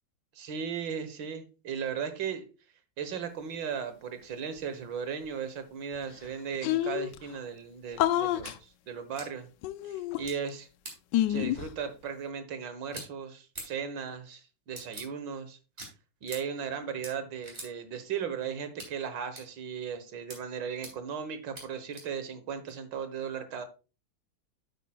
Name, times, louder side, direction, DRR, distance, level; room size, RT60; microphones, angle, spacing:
voice 1, 0.4-2.5 3.0-9.5 9.8-10.7 11.3-15.6 16.2-23.6, right 7 dB, 85° right, 10 dB, 1.9 m, -36 dB
sound 1, 6.0-6.1 6.2-6.3 6.6-7.2 8.0-8.6 9.6-10.5 11.1-11.7, left 13 dB, 75° left, 1.2 m, -28 dB
sound 2, 8.4-8.5 9.2-9.3 10.3-10.4 10.8-11.0 12.9-13.0 13.5-13.7 14.8-15.1 15.8-15.9 16.3-16.4 17.0-17.1 17.4-17.7 18.8-18.9 19.4-19.5 20.3-20.4 20.8-20.9 21.6-21.7 21.9-22.0 22.7-22.8, right 1 dB, 30° right, 3.4 m, -41 dB
9.0 x 8.6 x 2.3 m, 0.33 s
omnidirectional pair, 2.0 m